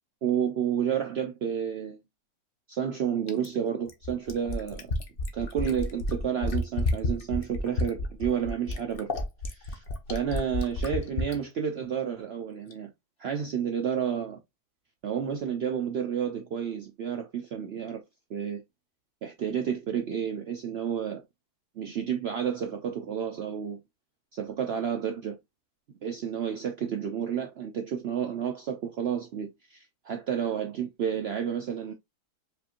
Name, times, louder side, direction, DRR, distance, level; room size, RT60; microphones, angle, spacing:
voice 1, 0.2-2.0 2.7-4.9 5.3-9.1 9.5-9.8 10.1-12.9 13.2-14.4 15.0-18.0 18.3-18.6 19.2-21.2 21.8-23.8 24.3-25.4 26.0-31.9, right 8 dB, 80° right, 0.5 m, -30 dB
Fill (with liquid), 3.3-11.4 12.7-12.8, left 2 dB, 50° left, 0.7 m, -30 dB
4.9 x 2.5 x 2.7 m
omnidirectional pair, 1.7 m